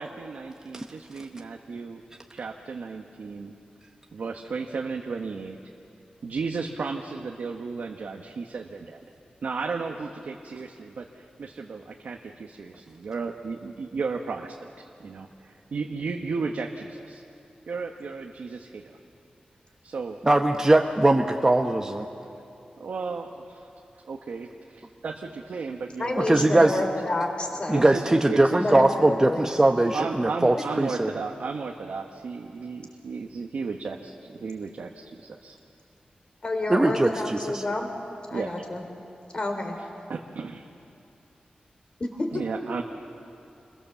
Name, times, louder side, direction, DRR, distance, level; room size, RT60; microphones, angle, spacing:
voice 1, 0.0-2.0 2.3-3.6 4.1-5.6 6.2-9.0 9.4-17.2 17.7-19.0 19.8-20.2 22.8-23.7 24.1-26.9 27.6-28.7 29.9-35.6 38.3-38.6 40.1-40.7 42.3-42.8, right 4 dB, 80° right, 2 dB, 1.1 m, -34 dB
voice 2, 20.2-22.1 26.2-26.7 27.7-31.1 36.7-37.6, right 2 dB, 20° right, 3 dB, 1.0 m, -21 dB
voice 3, 26.0-27.9 28.5-29.5 30.5-30.6 36.4-37.9 38.3-38.8 39.3-39.8 42.0-42.4, left 2 dB, 40° left, 4 dB, 3.4 m, -29 dB
27.5 x 21.5 x 7.2 m, 2.7 s
wide cardioid pair, 120°, 3 cm